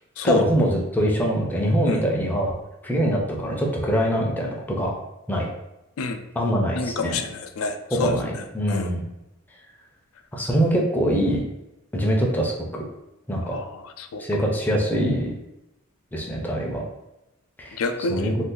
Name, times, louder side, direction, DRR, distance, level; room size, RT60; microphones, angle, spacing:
voice 1, 0.2-2.5 2.8-4.9 5.3-5.5 6.4-7.2 7.9-9.0 10.3-11.4 11.9-12.9 13.3-13.5 14.2-15.3 16.1-16.8 17.6-17.8 18.1-18.3, equal, 10° left, -1 dB, 0.5 m, -23 dB
voice 2, 6.7-8.9 13.4-14.2 17.7-18.4, left 3 dB, 80° left, 7 dB, 0.4 m, -29 dB
2.6 x 2.4 x 3.7 m, 0.92 s
head